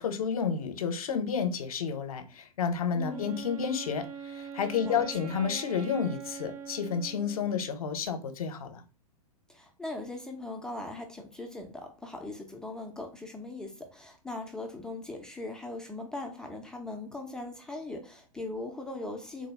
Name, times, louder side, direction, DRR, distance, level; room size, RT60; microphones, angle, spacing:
voice 1, 0.0-8.8, left 6 dB, 65° left, 0.7 m, -31 dB
voice 2, 3.0-3.3 4.8-5.0 9.5-19.5, left 2 dB, 5° left, 0.4 m, -40 dB
Wind instrument woodwind instrument, 3.0-7.9, right 7 dB, 65° right, 0.6 m, -43 dB
3.7 x 2.2 x 3.2 m
figure-of-eight pair, 110°, 19 cm